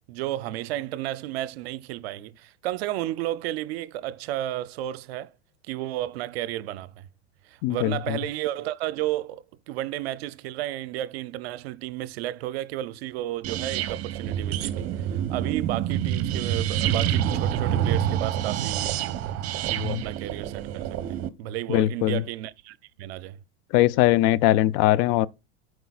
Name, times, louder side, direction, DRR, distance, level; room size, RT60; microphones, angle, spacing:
voice 1, 0.1-5.3 5.7-7.0 7.5-19.1 19.7-23.4, right 14 dB, 75° right, 0.6 m, -33 dB
voice 2, 7.6-8.2 19.8-20.0 21.7-22.2 23.7-25.3, left 15 dB, 55° left, 0.5 m, -21 dB
sound 1, 13.4-21.3, right 10 dB, 50° right, 1.0 m, -27 dB
12.5 x 4.7 x 2.4 m
hypercardioid pair, 105°, 31 cm